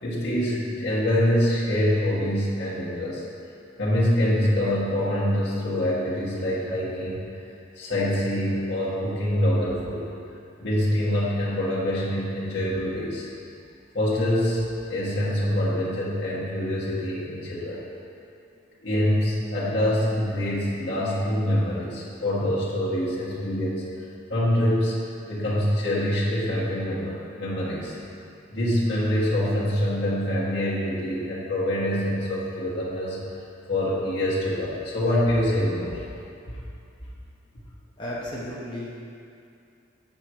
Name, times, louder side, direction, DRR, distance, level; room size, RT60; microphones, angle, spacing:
voice 1, 0.0-3.2 3.8-7.3 7.7-10.0 10.6-13.3 13.9-17.8 18.8-23.8 24.3-28.0 28.5-33.2 33.7-36.0, left 1 dB, 60° left, -9 dB, 1.5 m, -25 dB
voice 2, 38.0-39.1, left 1 dB, 25° left, -7 dB, 0.8 m, -34 dB
6.9 x 4.6 x 4.5 m, 2.5 s
head